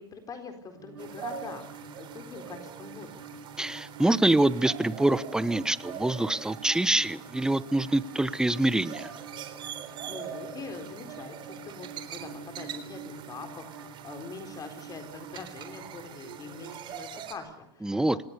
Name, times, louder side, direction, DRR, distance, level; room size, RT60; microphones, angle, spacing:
voice 1, 0.0-3.4 9.8-18.2, left 5 dB, 25° left, 7 dB, 4.2 m, -44 dB
sound 1, 0.7-16.8, right 4 dB, 90° right, 6.3 m, -46 dB
sound 2, 1.0-17.3, right 8 dB, 40° right, 3.8 m, -43 dB
voice 2, 3.6-9.1 17.8-18.2, right 1 dB, 5° right, 17 dB, 1.0 m, -25 dB
26.5 x 19.5 x 6.9 m, 0.75 s
hypercardioid pair, 110°, 13 cm